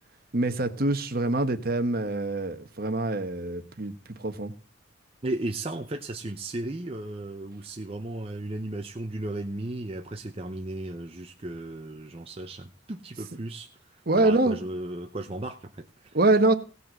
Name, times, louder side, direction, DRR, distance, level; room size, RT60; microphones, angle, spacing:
voice 1, 0.3-3.9 4.2-4.5 14.1-14.6 16.1-16.5, right 2 dB, 45° right, 1.1 m, -24 dB
voice 2, 5.2-16.2, right 2 dB, 30° right, 0.7 m, -35 dB
16.5 x 5.5 x 7.6 m
head